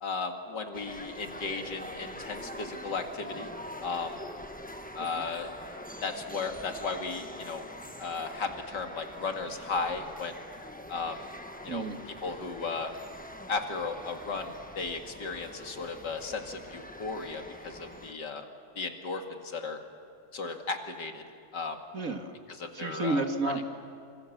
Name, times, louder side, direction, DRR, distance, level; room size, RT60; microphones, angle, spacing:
voice 1, 0.0-3.5 3.8-4.2 5.0-7.6 8.0-10.4 10.9-11.2 11.6-11.8 12.2-12.9 13.5-18.5 18.8-19.8 20.3-21.2 21.5-21.8 22.5-23.5, left 4 dB, 75° left, 4 dB, 2.7 m, -35 dB
sound 1, 0.7-18.1, left 1 dB, 5° left, 0.9 m, -44 dB
voice 2, 21.9-22.3 22.7-23.6, right 2 dB, 50° right, 5 dB, 2.1 m, -31 dB
27.5 x 25.5 x 7.3 m, 2.4 s
omnidirectional pair, 1.9 m